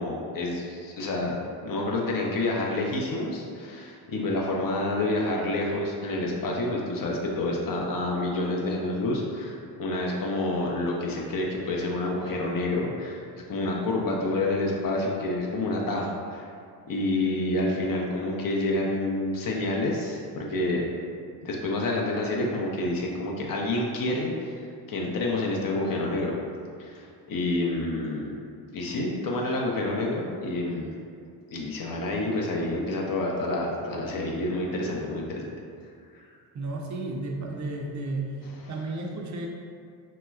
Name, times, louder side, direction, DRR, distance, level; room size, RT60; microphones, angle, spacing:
voice 1, 0.0-1.4 1.6-13.2 13.5-16.5 16.9-20.8 21.4-26.4 26.8-28.3 28.7-30.9 31.5-35.5 36.1-36.3 38.6-38.7, left 2 dB, 45° left, -1 dB, 0.6 m, -28 dB
voice 2, 36.5-38.3 38.7-39.5, right 2 dB, 40° right, 1 dB, 0.5 m, -32 dB
3.0 x 2.9 x 2.3 m, 2.3 s
supercardioid pair, 65°, 49 cm